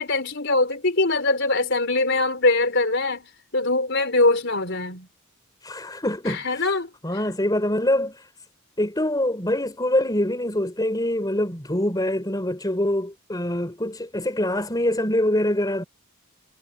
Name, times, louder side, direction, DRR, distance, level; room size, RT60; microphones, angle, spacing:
voice 1, 0.0-3.3 3.5-5.1 6.3-6.9, left 2 dB, 55° left, 4.4 m, -22 dB
voice 2, 5.6-6.7 7.0-8.3 8.8-15.8, left 1 dB, 15° left, 4.1 m, -24 dB
head